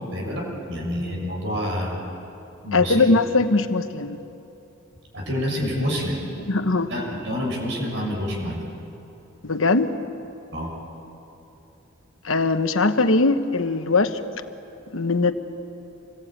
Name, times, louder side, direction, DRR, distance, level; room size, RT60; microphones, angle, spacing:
voice 1, 0.1-2.0 2.6-3.1 5.1-6.2 6.9-8.6 10.5-10.7, equal, 65° right, -1 dB, 6.6 m, -27 dB
voice 2, 2.7-4.2 6.5-6.9 9.4-9.9 12.2-14.2 14.9-15.3, left 3 dB, 70° left, 9 dB, 1.1 m, -20 dB
27.0 x 20.5 x 8.9 m, 3.0 s
head